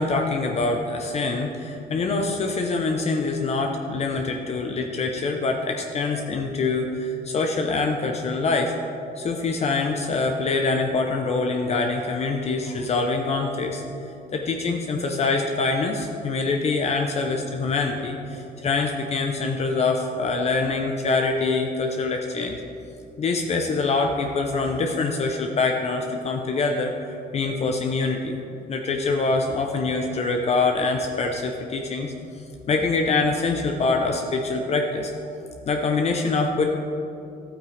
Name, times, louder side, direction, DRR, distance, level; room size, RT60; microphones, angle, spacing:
voice 1, 0.0-8.7 9.2-13.8 14.3-22.6 23.2-28.4 28.7-32.1 32.7-35.1 35.7-36.6, left 3 dB, 40° left, 2 dB, 0.7 m, -24 dB
12.0 x 8.8 x 3.4 m, 2.7 s
cardioid pair, 110°, 17 cm